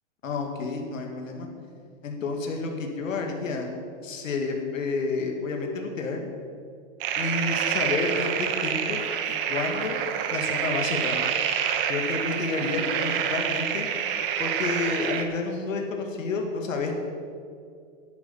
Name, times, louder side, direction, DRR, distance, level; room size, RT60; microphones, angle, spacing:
voice 1, 0.2-1.5 2.0-3.7 4.0-6.2 7.2-9.0 9.5-10.0 10.3-11.2 11.9-13.9 14.4-17.0, left 3 dB, 90° left, 3 dB, 2.3 m, -30 dB
sound 1, 7.0-15.2, right 8 dB, 45° right, 1.2 m, -27 dB
10.5 x 9.7 x 7.0 m, 2.3 s
hypercardioid pair, 140°, 38 cm